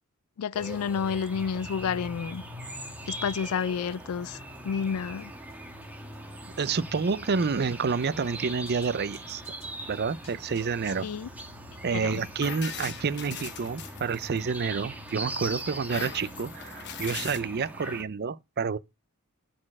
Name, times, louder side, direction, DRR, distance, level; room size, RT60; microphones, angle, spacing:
voice 1, 0.4-2.4 3.1-4.4 4.6-5.3 11.0-11.3 12.0-12.1, left 6 dB, 80° left, 0.4 m, -30 dB
sound 1, 0.5-18.0, right 1 dB, 5° right, 1.4 m, -41 dB
sound 2, 1.1-1.2 1.4-1.5 1.7-1.8 2.0-2.1 2.3-2.4 2.6-2.7 3.0-3.1 3.3-3.4 3.6-3.7 3.9-4.0 4.2-4.3 4.5-4.6 4.9-5.0 5.2-5.3 5.5-5.6 5.8-5.9 6.1-6.2 6.4-6.5 6.8-6.9 7.1-7.2 7.4-7.5 7.7-7.8 8.0-8.1 8.3-8.4 8.7-11.2, left 2 dB, 30° left, 4.6 m, -58 dB
voice 2, 6.6-9.4 9.9-11.1 11.8-18.8, right 5 dB, 50° right, 0.5 m, -29 dB
sound 3, 12.1-14.6 15.1-17.4, left 7 dB, 55° left, 1.1 m, -40 dB
9.7 x 4.4 x 5.9 m
head